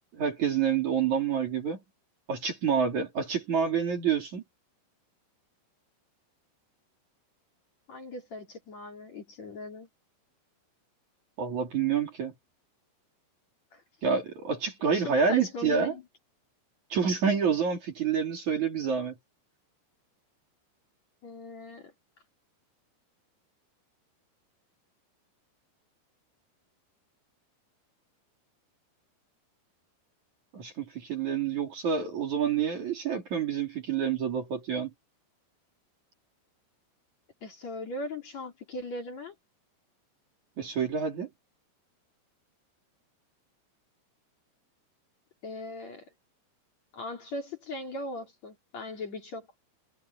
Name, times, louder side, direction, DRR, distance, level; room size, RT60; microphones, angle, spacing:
voice 1, 0.1-1.8 2.3-4.4 11.4-12.3 14.0-16.0 16.9-19.1 30.5-34.9 40.6-41.3, right 6 dB, 45° right, 4.0 m, -28 dB
voice 2, 7.9-9.9 13.7-13.8 14.9-16.0 21.2-21.9 37.4-39.3 45.4-46.1 46.9-49.5, left 2 dB, 40° left, 4.1 m, -39 dB
omnidirectional pair, 5.2 m